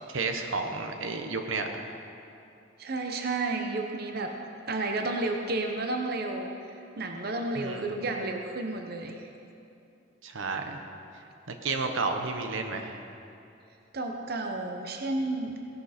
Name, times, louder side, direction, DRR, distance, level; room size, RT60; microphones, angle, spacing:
voice 1, 0.1-1.9 7.6-8.0 10.2-10.8 11.5-13.0, right 3 dB, 90° right, 5 dB, 1.0 m, -32 dB
voice 2, 2.8-4.3 4.6-9.3 13.9-15.6, right 2 dB, 50° right, 4 dB, 0.9 m, -32 dB
16.5 x 11.0 x 4.3 m, 2.7 s
head